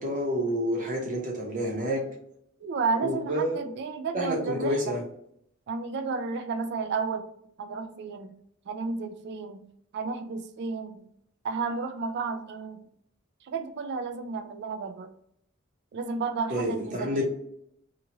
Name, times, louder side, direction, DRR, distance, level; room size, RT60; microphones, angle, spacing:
voice 1, 0.0-2.0 3.0-3.6 4.1-5.0 16.5-17.3, equal, 40° right, -1 dB, 0.9 m, -28 dB
voice 2, 2.6-5.0 5.7-7.3 7.6-8.3 8.7-9.7 9.9-11.1 11.4-12.8 13.4-15.1 15.9-17.3, right 4 dB, 55° right, 8 dB, 0.3 m, -32 dB
3.0 x 2.4 x 2.7 m, 0.71 s
head